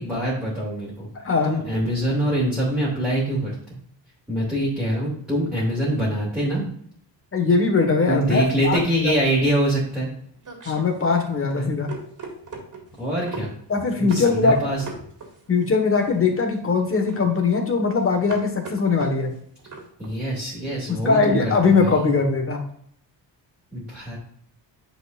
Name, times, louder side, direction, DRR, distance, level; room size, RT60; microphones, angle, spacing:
voice 1, 0.0-1.1 1.4-3.8 4.3-6.7 8.1-10.1 11.6-11.7 13.0-13.5 14.0-14.8 20.0-22.1 23.7-24.2, right 1 dB, ahead, -8 dB, 2.3 m, -24 dB
voice 2, 7.3-8.8 9.0-9.1 10.6-11.9 13.7-14.6 15.5-19.3 20.9-22.6, left 4 dB, 30° left, 3 dB, 1.5 m, -20 dB
sound 1, 9.9-20.2, right 3 dB, 45° right, 2.1 m, -40 dB
9.6 x 5.0 x 2.5 m, 0.64 s
cardioid pair, 135°, 44 cm